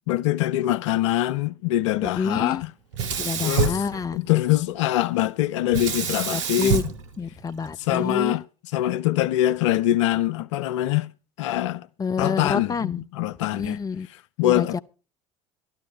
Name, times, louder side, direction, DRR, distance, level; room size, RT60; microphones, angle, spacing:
voice 1, 0.1-2.7 3.4-3.8 4.1-6.8 7.8-8.4 8.7-11.1 11.4-11.9 12.2-13.8 14.4-14.8, left 14 dB, 70° left, 0.5 m, -23 dB
voice 2, 2.0-2.6 3.2-4.2 6.3-6.8 7.2-8.4 12.0-13.1 13.5-14.1 14.4-14.8, left 5 dB, 25° left, 0.7 m, -28 dB
Sink (filling or washing), 2.9-4.6 5.7-8.0, right 6 dB, 75° right, 1.1 m, -27 dB
12.5 x 12.5 x 4.4 m
hypercardioid pair, 65°, 16 cm